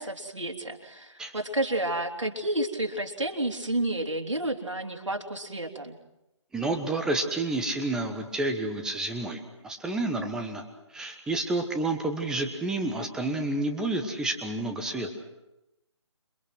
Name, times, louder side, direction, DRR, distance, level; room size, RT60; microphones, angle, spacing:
voice 1, 0.0-6.0, right 1 dB, 75° right, 2 dB, 3.5 m, -30 dB
voice 2, 6.5-10.6 10.9-15.1, right 2 dB, 5° right, 5 dB, 1.3 m, -30 dB
28.0 x 23.5 x 6.2 m, 0.92 s
figure-of-eight pair, 150°, 16 cm